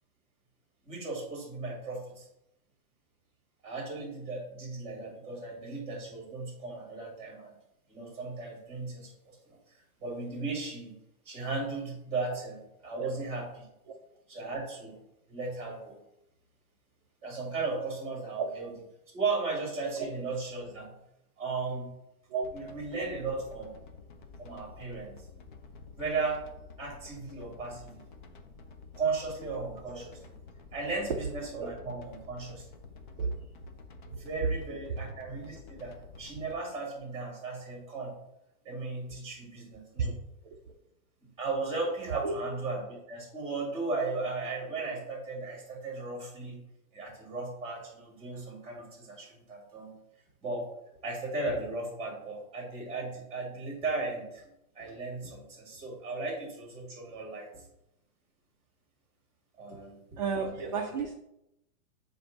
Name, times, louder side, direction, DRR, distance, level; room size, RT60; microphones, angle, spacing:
voice 1, 0.9-2.3 3.6-7.5 7.9-9.1 9.5-9.6 10.0-11.0 11.3-13.7 14.3-15.0 15.3-16.0 17.2-18.7 19.1-20.9 21.4-21.9 22.5-23.7 24.4-25.2 26.0-26.4 26.8-28.0 29.0-30.2 30.7-32.7 34.2-38.2 38.6-40.2 41.4-46.6 46.9-49.9 50.4-50.7 51.0-54.4 54.7-57.6 59.6-60.9, right 3 dB, 15° right, -2 dB, 2.3 m, -36 dB
sound 1, 22.4-36.5, left 4 dB, 35° left, 0.5 m, -50 dB
voice 2, 60.2-61.1, right 5 dB, 35° right, 2 dB, 0.4 m, -33 dB
7.3 x 2.7 x 5.1 m, 0.84 s
hypercardioid pair, 165°, 44 cm